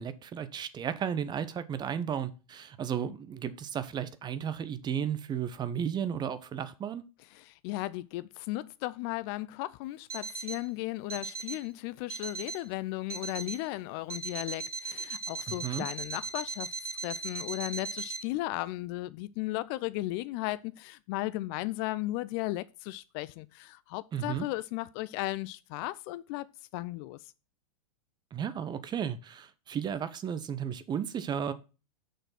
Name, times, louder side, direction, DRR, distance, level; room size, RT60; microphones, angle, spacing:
voice 1, 0.0-7.0 15.5-15.9 24.1-24.5 28.3-31.5, right 8 dB, 25° right, 0.8 m, -34 dB
voice 2, 7.3-16.7 17.0-26.5 26.7-27.2, left 18 dB, 40° left, 0.4 m, -35 dB
Alarm, 10.1-10.7 11.1-11.7 12.1-12.7 13.1-13.7 14.1-18.2, right 4 dB, 85° right, 0.7 m, -38 dB
6.7 x 6.4 x 5.8 m
figure-of-eight pair, 95°, 19 cm